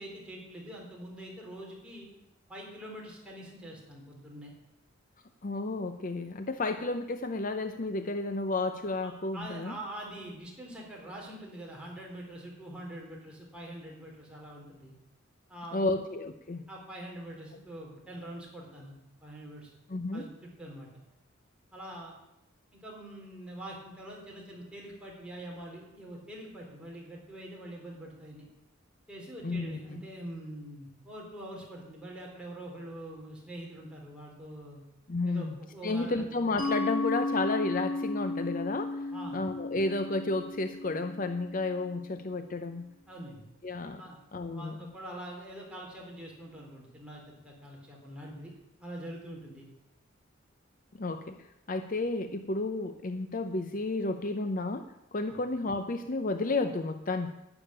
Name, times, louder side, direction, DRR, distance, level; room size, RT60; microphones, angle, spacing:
voice 1, 0.0-2.1 2.5-4.5 9.0-14.9 15.5-16.0 16.7-19.7 20.1-20.9 21.7-22.1 22.7-28.4 29.1-34.8 35.3-36.3 39.1-39.4 43.1-43.5 44.0-44.2 44.5-48.5 48.8-49.7 55.3-55.4, right 1 dB, 5° right, -3 dB, 3.8 m, -44 dB
voice 2, 5.4-9.8 15.7-16.6 19.9-20.3 29.4-30.0 35.1-35.5 35.8-42.9 43.6-44.0 44.3-44.9 51.0-57.3, left 2 dB, 40° left, 8 dB, 0.7 m, -32 dB
Mallet percussion, 36.6-42.0, left 2 dB, 90° left, 6.3 m, -34 dB
12.0 x 7.2 x 9.9 m, 0.90 s
head